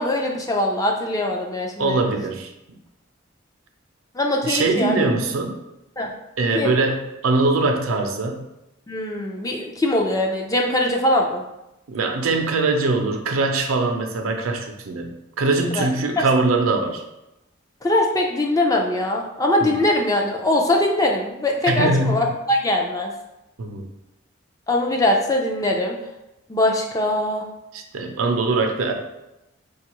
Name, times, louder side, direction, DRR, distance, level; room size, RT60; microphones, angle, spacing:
voice 1, 0.0-2.0 4.1-5.1 6.0-6.1 6.5-6.8 8.9-11.4 15.7-15.9 16.2-16.3 17.8-23.1 24.7-26.0 26.5-27.5, left 1 dB, 15° left, 0 dB, 0.4 m, -22 dB
voice 2, 1.8-2.5 4.4-5.6 6.4-8.5 11.9-17.0 21.7-22.3 23.6-23.9 27.7-28.9, right 3 dB, 75° right, 4 dB, 0.5 m, -22 dB
4.9 x 2.3 x 2.9 m, 0.91 s
head